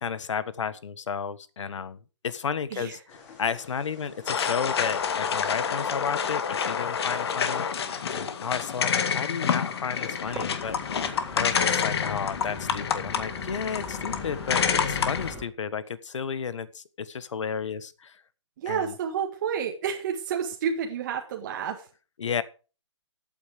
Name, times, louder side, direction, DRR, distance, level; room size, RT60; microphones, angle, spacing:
voice 1, 0.0-2.0 2.2-7.8 8.1-10.8 11.3-18.2 18.7-18.9 22.2-22.4, left 6 dB, 70° left, 15 dB, 1.5 m, -32 dB
sound 1, 3.1-12.7, left 4 dB, 25° left, 5.4 m, -51 dB
sound 2, 4.3-15.3, left 7 dB, 55° left, 1.9 m, -28 dB
sound 3, 10.0-15.4, equal, 5° right, 3.9 m, -42 dB
voice 2, 18.6-21.9, right 7 dB, 35° right, 2 dB, 1.8 m, -30 dB
14.0 x 8.9 x 4.9 m, 0.35 s
hypercardioid pair, 160°, 16 cm